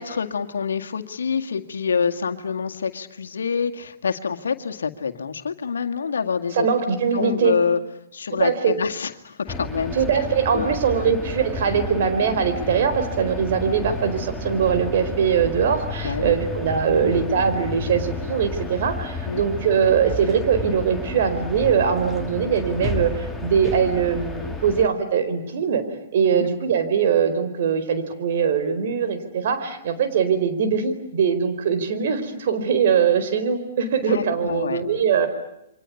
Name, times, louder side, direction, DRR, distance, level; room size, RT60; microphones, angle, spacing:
voice 1, 0.0-6.7 7.1-7.8 8.1-10.8 16.0-16.4 16.9-17.1 19.3-19.4 26.3-26.5 34.0-34.8, left 6 dB, 80° left, 5 dB, 2.0 m, -27 dB
voice 2, 6.5-7.6 8.4-8.8 9.9-25.8 26.1-35.3, right 7 dB, 60° right, 9 dB, 4.5 m, -22 dB
sound 1, 9.5-24.9, left 2 dB, 5° left, 2.3 m, -31 dB
29.0 x 24.0 x 8.4 m, 0.80 s
hypercardioid pair, 125°, 0 cm